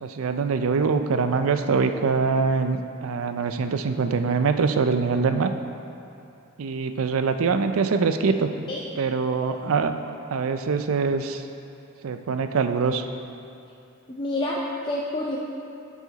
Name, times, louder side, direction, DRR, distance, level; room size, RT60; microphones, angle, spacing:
voice 1, 0.0-5.5 6.6-8.5 9.0-9.9 10.3-11.4 12.0-13.0, right 5 dB, 70° right, 8 dB, 0.4 m, -23 dB
voice 2, 14.1-15.4, left 1 dB, 20° left, -5 dB, 0.6 m, -28 dB
10.5 x 4.9 x 4.0 m, 2.6 s
head